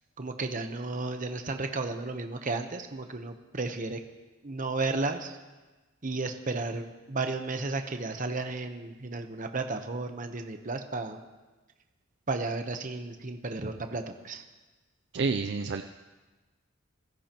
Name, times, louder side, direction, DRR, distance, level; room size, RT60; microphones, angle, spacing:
voice 1, 0.2-4.0 4.4-5.4 6.0-11.2 12.3-14.4, right 3 dB, 40° right, 6 dB, 1.0 m, -33 dB
voice 2, 15.1-15.8, right 4 dB, 60° right, 6 dB, 0.5 m, -28 dB
24.5 x 16.5 x 3.0 m, 1.2 s
head